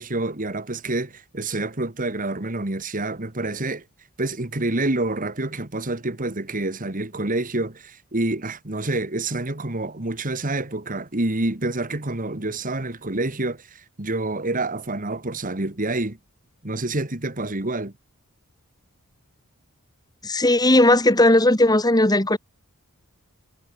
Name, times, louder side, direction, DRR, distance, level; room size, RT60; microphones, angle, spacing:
voice 1, 0.0-3.8 4.2-16.2 16.6-17.9, right 2 dB, 35° right, 1.9 m, -27 dB
voice 2, 20.2-22.4, left 1 dB, 15° left, 3.4 m, -17 dB
head